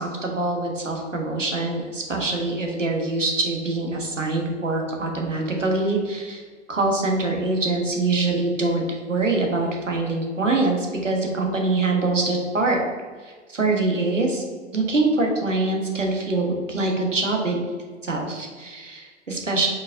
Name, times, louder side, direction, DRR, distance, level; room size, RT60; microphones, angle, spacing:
voice 1, 0.0-6.4 6.7-8.8 9.1-12.8 13.2-14.4 14.7-17.6 18.0-19.7, right 2 dB, 90° right, 1 dB, 0.9 m, -24 dB
4.7 x 4.0 x 2.4 m, 1.5 s
figure-of-eight pair, 95°, 37 cm